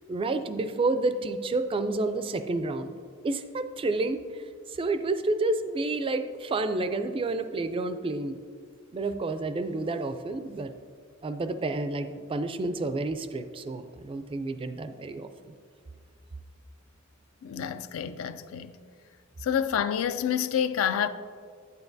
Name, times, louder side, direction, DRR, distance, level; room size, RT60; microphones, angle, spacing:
voice 1, 0.1-2.9 3.2-4.2 4.7-8.4 8.9-10.7 11.2-15.5, right 2 dB, 25° right, 0.3 m, -30 dB
voice 2, 17.4-18.8 19.4-21.1, left 8 dB, 70° left, 0.3 m, -28 dB
8.9 x 8.1 x 2.6 m
head